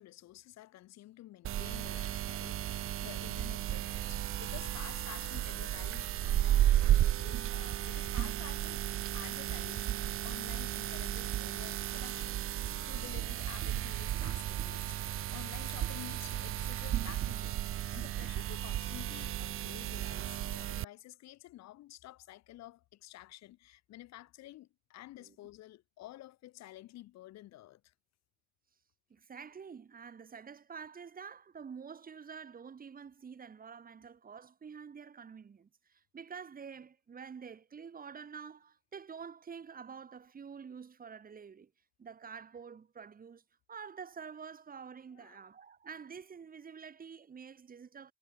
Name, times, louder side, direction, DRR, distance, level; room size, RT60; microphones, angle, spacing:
voice 1, 0.0-8.8 9.1-12.4 12.9-27.9 45.1-45.5, left 15 dB, 60° left, 2.2 m, -51 dB
sound 1, 1.4-20.8, right 12 dB, 45° right, 0.9 m, -34 dB
voice 2, 29.1-41.7 42.0-43.4 43.7-48.1, right 6 dB, 30° right, 1.9 m, -48 dB
supercardioid pair, 95°, 30 cm